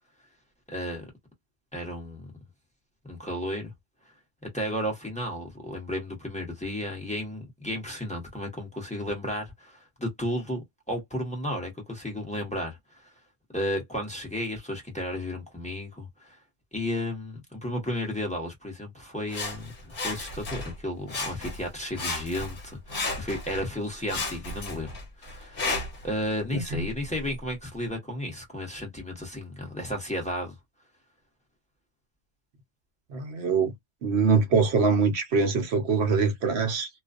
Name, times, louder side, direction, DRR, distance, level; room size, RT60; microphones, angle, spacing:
voice 1, 0.7-1.0 1.7-2.3 3.0-3.7 4.5-13.0 13.5-16.4 16.7-25.7 26.0-30.5, left 1 dB, 5° left, 0.8 m, -33 dB
Sawing, 19.3-20.8 21.1-21.7 22.0-23.7 24.1-26.1 26.7-26.8, left 3 dB, 55° left, 1.1 m, -33 dB
voice 2, 26.5-26.9 33.1-33.7 34.0-36.9, right 5 dB, 65° right, 0.9 m, -24 dB
2.4 x 2.2 x 2.4 m
omnidirectional pair, 1.2 m